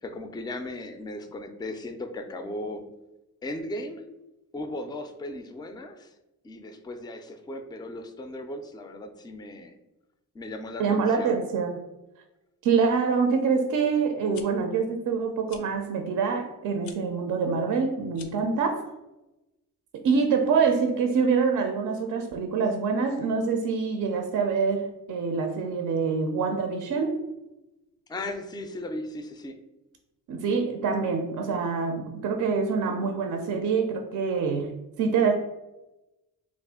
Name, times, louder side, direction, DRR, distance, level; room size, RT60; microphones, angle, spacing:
voice 1, 0.0-2.8 3.4-4.1 4.5-6.1 6.4-9.7 10.3-11.4 28.1-29.6, left 1 dB, 15° left, 7 dB, 0.3 m, -37 dB
voice 2, 10.8-11.8 12.6-18.9 19.9-27.2 30.3-34.7 35.0-35.3, right 5 dB, 65° right, 4 dB, 0.5 m, -25 dB
sound 1, 14.1-14.5 15.5-15.7 16.8-17.0 18.1-18.5, left 7 dB, 80° left, 0.5 m, -46 dB
3.2 x 2.5 x 3.5 m, 0.98 s
cardioid pair, 85°, 34 cm